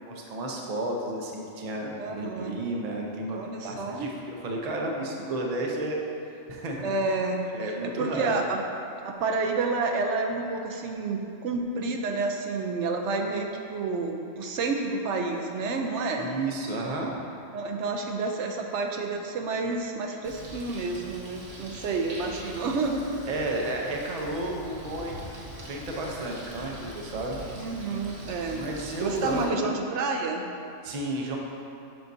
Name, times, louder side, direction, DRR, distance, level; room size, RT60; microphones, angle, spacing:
voice 1, 0.0-6.0 6.5-7.1 7.5-8.4 16.2-17.2 22.1-22.2 23.3-27.4 28.5-29.6 30.8-31.4, right 1 dB, 40° right, -1 dB, 0.7 m, -32 dB
voice 2, 2.0-2.6 3.3-4.1 6.8-8.6 9.0-16.3 17.5-23.2 27.6-28.7 29.0-30.4, right 3 dB, 80° right, 2 dB, 0.9 m, -29 dB
Bird, 20.2-29.4, right 1 dB, 65° right, 1.2 m, -43 dB
7.7 x 5.7 x 2.6 m, 2.6 s
omnidirectional pair, 1.2 m